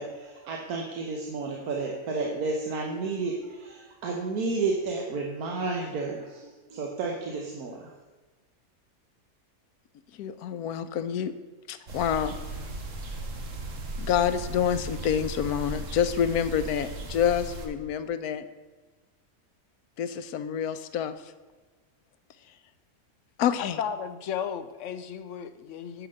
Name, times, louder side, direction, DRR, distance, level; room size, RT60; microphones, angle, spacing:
voice 1, 0.0-7.9, right 3 dB, 90° right, 1 dB, 1.5 m, -31 dB
voice 2, 10.1-11.3 11.7-12.4 14.0-18.5 20.0-21.2 23.4-23.8, left 8 dB, 85° left, 11 dB, 1.2 m, -27 dB
sound 1, 11.9-17.7, right 2 dB, 60° right, 1.5 m, -37 dB
voice 3, 23.6-26.1, left 8 dB, 65° left, 11 dB, 0.9 m, -34 dB
9.3 x 5.9 x 6.4 m, 1.3 s
omnidirectional pair, 1.5 m